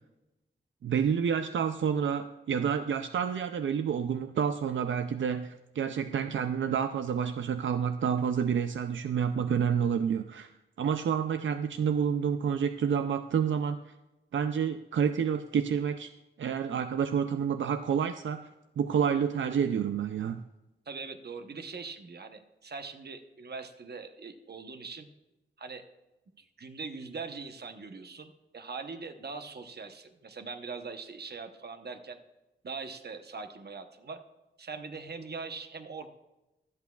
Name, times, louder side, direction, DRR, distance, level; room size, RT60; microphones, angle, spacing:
voice 1, 0.8-10.5 10.8-13.9 14.3-16.1 16.4-18.5 18.8-20.4, right 7 dB, 85° right, 8 dB, 0.4 m, -29 dB
voice 2, 20.9-25.1 25.6-25.8 26.4-32.2 32.6-34.2 34.6-36.1, right 4 dB, 60° right, 7 dB, 0.9 m, -42 dB
24.0 x 8.3 x 2.3 m, 1.0 s
wide cardioid pair, 115°, 19 cm